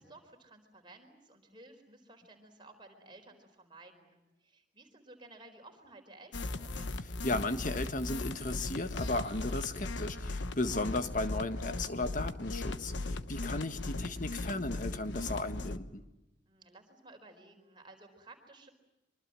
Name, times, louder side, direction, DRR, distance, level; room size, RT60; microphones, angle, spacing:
voice 1, 0.0-7.0 16.5-18.7, right 2 dB, 25° right, 3 dB, 4.5 m, -55 dB
sound 1, 6.3-15.8, left 2 dB, 80° left, 1.2 m, -38 dB
voice 2, 7.2-16.0, left 2 dB, 45° left, 9 dB, 1.6 m, -35 dB
24.5 x 24.5 x 7.7 m, 0.96 s
head